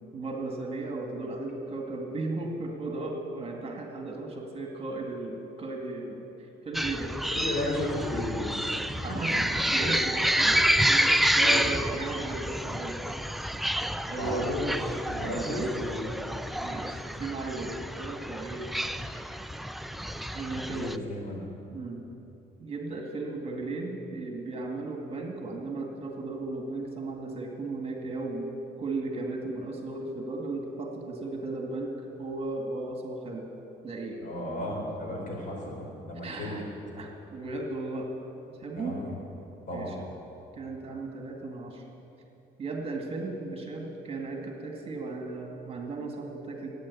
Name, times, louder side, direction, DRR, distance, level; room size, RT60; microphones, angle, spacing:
voice 1, 0.1-7.1 9.0-10.6 10.9-13.0 14.1-14.5 15.1-15.7 16.6-18.7 19.2-19.4 20.3-20.9 21.7-22.0 22.6-33.5 33.8-34.2 36.2-36.6 37.0-38.1 38.6-39.0 39.7-40.0 40.6-41.8 42.6-46.7, right 2 dB, 35° right, 1 dB, 2.2 m, -36 dB
sound 1, 6.7-21.0, equal, ahead, 0.4 m, -29 dB
voice 2, 7.3-8.5 9.6-9.7 11.4-11.6 14.1-16.1 20.7-21.5 34.2-36.6 38.8-39.1 39.7-40.0, left 1 dB, 50° left, -1 dB, 4.6 m, -34 dB
16.0 x 9.1 x 8.5 m, 2.9 s
cardioid pair, 110°, 17 cm